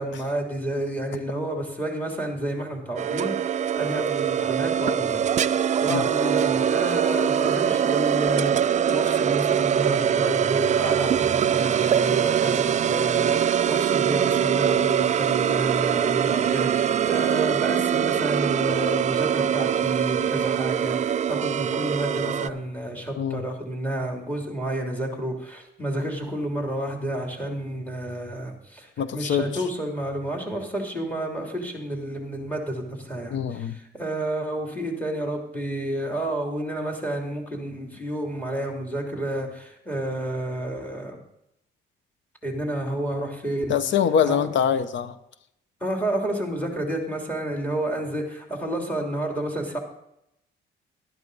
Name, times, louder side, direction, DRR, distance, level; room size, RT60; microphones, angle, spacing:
voice 1, 0.0-41.2 42.4-43.7 44.2-44.4 45.8-49.8, right 1 dB, 10° left, 1 dB, 3.0 m, -30 dB
sound 1, 3.0-22.5, right 9 dB, 35° right, 0.4 m, -23 dB
voice 2, 29.0-29.6 33.3-33.8 43.7-45.2, left 8 dB, 70° left, 13 dB, 0.8 m, -24 dB
11.5 x 11.0 x 4.0 m, 0.81 s
cardioid pair, 90°, 20 cm